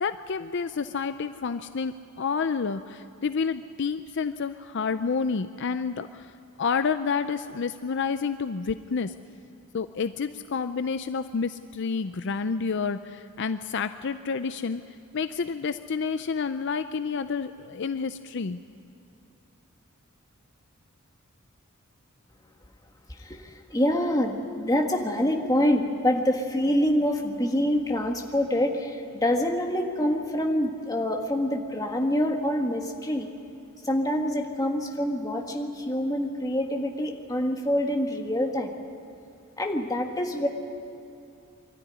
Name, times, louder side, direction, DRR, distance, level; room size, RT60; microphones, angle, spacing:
voice 1, 0.0-6.3 6.6-9.1 9.7-14.8 15.1-18.6, left 5 dB, 60° left, 11 dB, 0.5 m, -29 dB
voice 2, 23.1-33.3 33.8-38.7 39.6-40.5, left 1 dB, 15° left, 2 dB, 1.7 m, -26 dB
23.5 x 13.0 x 9.9 m, 2.7 s
head